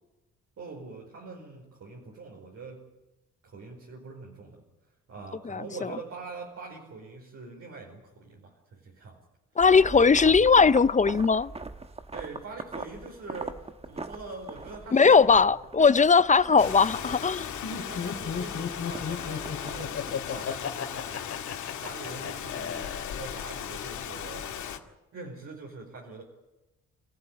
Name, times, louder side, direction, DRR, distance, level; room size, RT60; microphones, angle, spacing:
voice 1, 0.6-2.9 3.4-9.2 12.1-15.5 17.8-21.3 21.8-24.6 25.1-26.2, right 3 dB, 55° right, 5.0 m, -43 dB
voice 2, 9.6-11.5 14.9-17.5, left 5 dB, 25° left, 0.7 m, -19 dB
sound 1, 9.6-20.4, right 3 dB, 20° right, 1.2 m, -42 dB
Rain, 16.6-24.8, left 9 dB, 75° left, 2.2 m, -37 dB
Laughter, 17.6-23.6, left 6 dB, 55° left, 2.7 m, -34 dB
27.0 x 14.5 x 9.0 m
cardioid pair, 90°, 30 cm